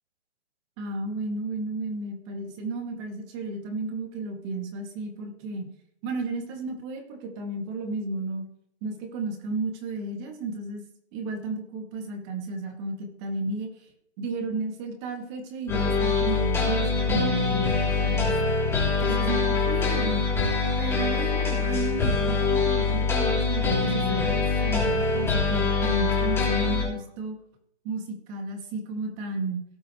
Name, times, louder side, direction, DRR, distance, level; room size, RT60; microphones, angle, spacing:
voice 1, 0.8-5.7 6.0-8.4 8.8-10.8 11.1-13.9 14.2-18.5 19.0-20.3 20.8-27.4 27.8-29.6, right 2 dB, 25° right, 3 dB, 2.1 m, -33 dB
sound 1, 15.7-26.8, left 4 dB, 5° left, 3.2 m, -24 dB
18.0 x 6.8 x 3.1 m, 0.72 s
hypercardioid pair, 145°, 35 cm